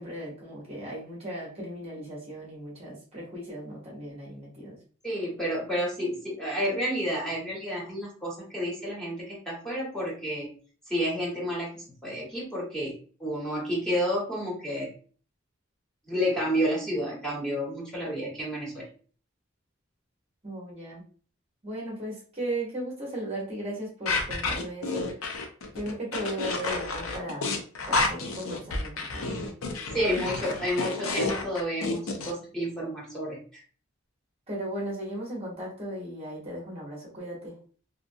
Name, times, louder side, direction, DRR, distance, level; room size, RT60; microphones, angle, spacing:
voice 1, 0.0-4.8 20.4-21.0 21.6-25.4 25.7-27.5 27.9-29.4 30.1-30.3 34.5-37.6, right 1 dB, 30° right, -4 dB, 0.9 m, -36 dB
voice 2, 5.0-10.5 10.9-12.9 13.2-14.9 16.1-18.8 29.9-33.4, equal, 5° left, -6 dB, 1.1 m, -30 dB
sound 1, 24.1-32.3, left 3 dB, 90° left, 0.6 m, -30 dB
2.8 x 2.4 x 2.5 m, 0.41 s
head